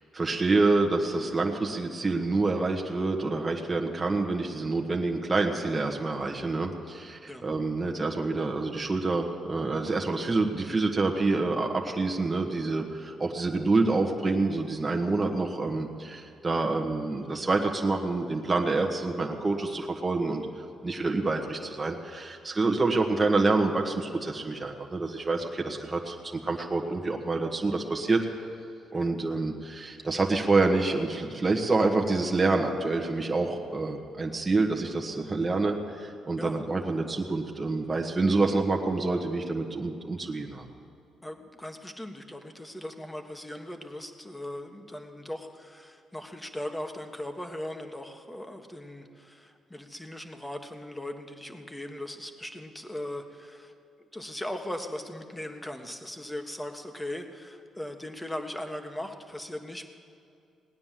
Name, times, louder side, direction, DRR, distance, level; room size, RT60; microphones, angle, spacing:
voice 1, 0.0-20.4 20.8-28.2 28.9-40.7, right 3 dB, 20° right, 2 dB, 1.4 m, -27 dB
voice 2, 41.2-59.9, left 1 dB, 10° left, 5 dB, 1.5 m, -39 dB
18.0 x 9.6 x 7.5 m, 2.5 s
cardioid pair, 90°, 0 cm